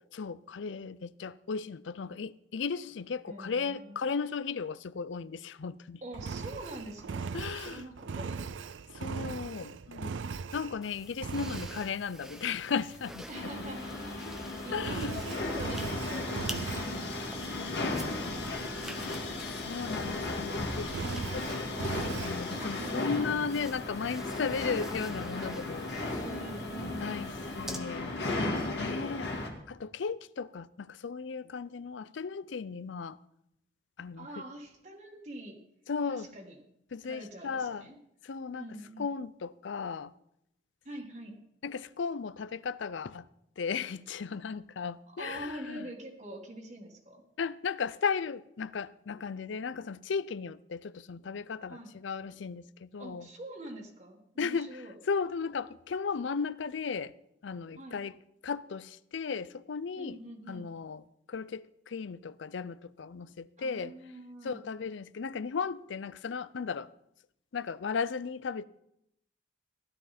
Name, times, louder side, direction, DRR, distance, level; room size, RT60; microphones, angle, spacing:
voice 1, 0.0-6.0 7.3-7.9 8.9-10.2 10.5-13.3 13.6-13.7 14.3-15.2 19.6-21.5 21.8-26.1 27.0-28.1 28.8-29.3 29.7-33.2 34.0-34.3 35.9-36.3 36.9-37.9 38.2-38.7 39.0-40.1 41.6-43.3 43.6-45.8 47.4-53.3 54.4-57.1 57.4-58.2 58.4-60.2 60.5-61.0 61.3-63.9 64.4-66.9 67.5-68.7, left 5 dB, 75° left, 0.5 m, -36 dB
voice 2, 3.3-4.1 6.0-8.5 13.3-14.3 14.6-17.0 17.8-19.1 22.5-23.2 24.6-24.9 26.0-27.2 34.2-35.6 36.1-36.6 37.0-38.0 38.5-39.1 40.9-41.4 45.1-47.2 51.7-51.9 53.0-55.0 57.8-58.0 60.0-60.7 63.6-64.6, right 1 dB, 35° right, 1.8 m, -45 dB
Engine, 6.1-10.9 11.2-11.9 14.7-17.0 20.8-22.4, right 5 dB, 80° right, 0.5 m, -38 dB
sound 1, 10.8-27.8, equal, 5° right, 0.8 m, -48 dB
sound 2, 13.3-29.5, left 2 dB, 60° left, 2.2 m, -35 dB
15.5 x 11.5 x 4.2 m
head